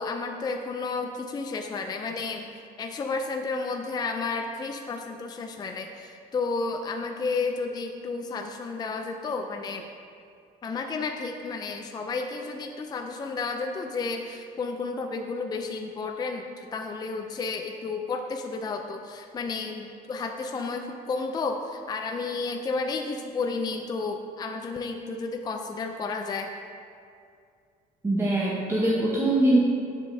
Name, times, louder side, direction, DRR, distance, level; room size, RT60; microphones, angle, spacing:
voice 1, 0.0-2.5 2.8-9.9 10.6-26.5, left 4 dB, 25° left, 4 dB, 0.4 m, -32 dB
voice 2, 28.0-29.6, right 1 dB, 15° right, -7 dB, 0.9 m, -22 dB
7.3 x 6.7 x 2.7 m, 2.3 s
cardioid pair, 110°, 17 cm